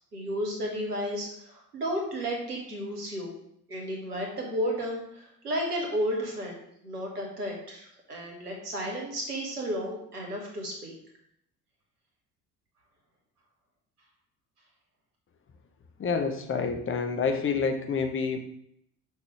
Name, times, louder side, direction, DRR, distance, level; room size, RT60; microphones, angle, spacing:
voice 1, 0.1-3.3 3.7-10.9, equal, 85° right, 0 dB, 1.4 m, -33 dB
voice 2, 16.0-18.4, left 5 dB, 30° left, 6 dB, 0.9 m, -28 dB
6.3 x 5.2 x 3.3 m, 0.73 s
figure-of-eight pair, 55°, 45 cm